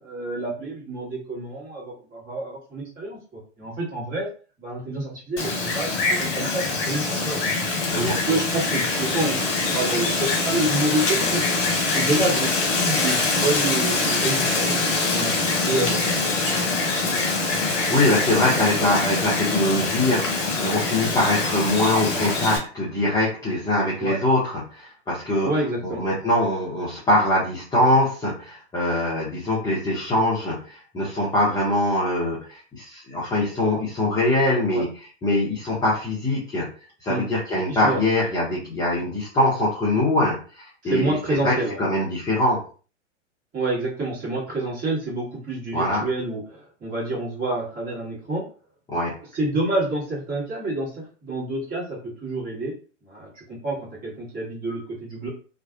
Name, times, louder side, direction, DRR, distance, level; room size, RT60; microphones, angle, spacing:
voice 1, 0.0-4.3 4.6-7.4 7.9-11.4 11.8-14.8 15.1-15.3 15.7-16.0 24.0-24.2 25.4-26.0 34.7-34.9 37.1-37.3 37.7-38.0 40.8-41.8 43.5-48.5 49.3-52.7 53.0-55.3, right 2 dB, 25° right, -5 dB, 1.5 m, -28 dB
Wind, 5.4-22.6, left 3 dB, 50° left, 1.2 m, -24 dB
voice 2, 17.7-25.5 25.8-34.9 35.2-36.7 37.0-42.6 45.7-46.0 48.9-49.1, left 1 dB, 10° left, -8 dB, 0.7 m, -23 dB
2.6 x 2.3 x 2.4 m, 0.39 s
hypercardioid pair, 115°, 37 cm